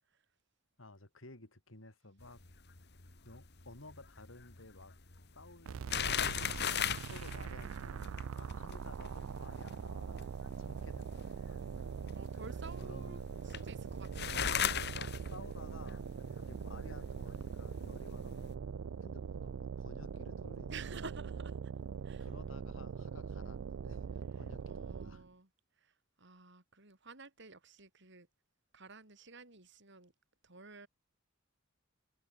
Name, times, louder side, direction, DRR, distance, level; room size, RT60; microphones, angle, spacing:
voice 1, 0.8-2.4 3.2-4.9 5.4-6.2 6.8-11.6 12.8-13.8 14.9-16.1 16.4-18.5 19.0-21.0 22.2-25.3, left 2 dB, 75° left, 4.0 m, -55 dB
sound 1, 2.2-18.5, left 8 dB, 55° left, 2.3 m, -40 dB
sound 2, 5.7-25.3, right 6 dB, 85° right, 0.4 m, -42 dB
voice 2, 12.1-14.7 20.7-21.7 22.0-22.3 24.7-25.5 25.8-28.3 28.7-30.1 30.4-30.9, right 4 dB, 60° right, 5.6 m, -52 dB
head